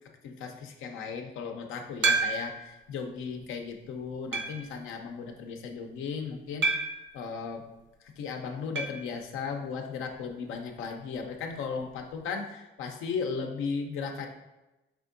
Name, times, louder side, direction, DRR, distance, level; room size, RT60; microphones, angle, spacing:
voice 1, 0.2-6.9 7.1-7.7 8.0-14.3, left 5 dB, 85° left, 4 dB, 0.6 m, -36 dB
sound 1, 2.0-2.7 3.3-3.4 4.3-4.7 6.6-7.1 8.8-9.1 9.3-9.4 9.7-9.8 11.8-11.9, right 4 dB, 70° right, 0.6 m, -28 dB
4.9 x 3.5 x 2.5 m, 1.0 s
cardioid pair, 90°, 20 cm